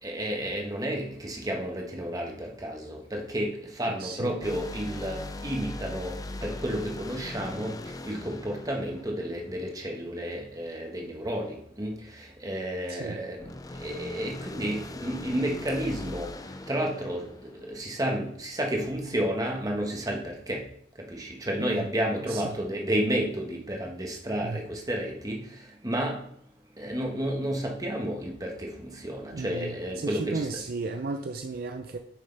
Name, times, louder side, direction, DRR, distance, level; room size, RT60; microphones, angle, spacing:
voice 1, 0.0-6.2 6.4-13.5 13.8-20.6 21.0-26.2 26.8-30.5, equal, 20° right, 0 dB, 1.4 m, -31 dB
voice 2, 3.9-4.4 12.9-13.2 21.6-21.9 22.3-22.4 24.4-24.6 29.3-32.0, right 3 dB, 55° right, 6 dB, 0.5 m, -34 dB
sound 1, 4.4-9.9 13.4-18.1, left 2 dB, 20° left, 0.5 m, -40 dB
9.4 x 6.4 x 3.4 m, 0.69 s
head